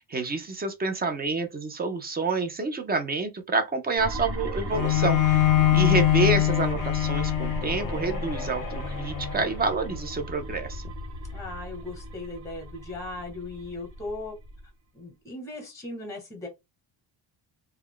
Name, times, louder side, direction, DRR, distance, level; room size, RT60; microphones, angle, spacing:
voice 1, 0.0-10.8, right 3 dB, 20° right, 0.3 m, -28 dB
sound 1, 4.0-14.7, right 1 dB, 50° right, 1.1 m, -36 dB
Bowed string instrument, 4.7-9.9, left 14 dB, 45° left, 0.5 m, -24 dB
voice 2, 11.3-14.4 14.9-16.5, left 2 dB, 5° left, 1.0 m, -38 dB
2.2 x 2.2 x 3.6 m
cardioid pair, 140°, 48 cm